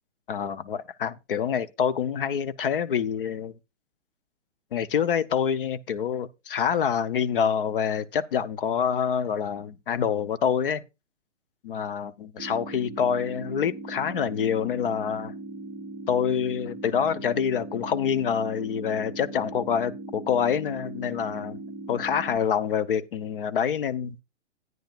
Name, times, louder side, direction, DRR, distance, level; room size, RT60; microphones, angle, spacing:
voice 1, 0.3-3.6 4.7-10.8 11.6-15.3 16.1-21.6 21.9-24.2, left 7 dB, 50° left, 0.7 m, -26 dB
sound 1, 12.4-22.4, right 2 dB, 15° right, 0.9 m, -39 dB
13.0 x 9.3 x 2.4 m
figure-of-eight pair, 125°, 36 cm